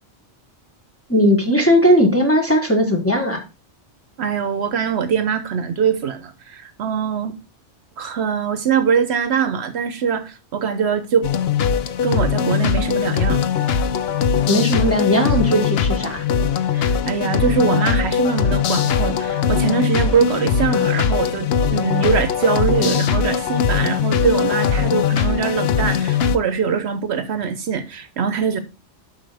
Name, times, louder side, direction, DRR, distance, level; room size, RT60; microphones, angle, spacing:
voice 1, 1.1-3.4 14.5-16.2, equal, 10° left, 1.3 m, -17 dB
voice 2, 4.2-7.3 8.0-11.3 12.0-13.4 16.7-28.6, right 6 dB, 70° right, 1.0 m, -22 dB
sound 1, 11.2-26.4, left 7 dB, 65° left, 0.8 m, -20 dB
7.7 x 5.6 x 3.3 m
omnidirectional pair, 1.2 m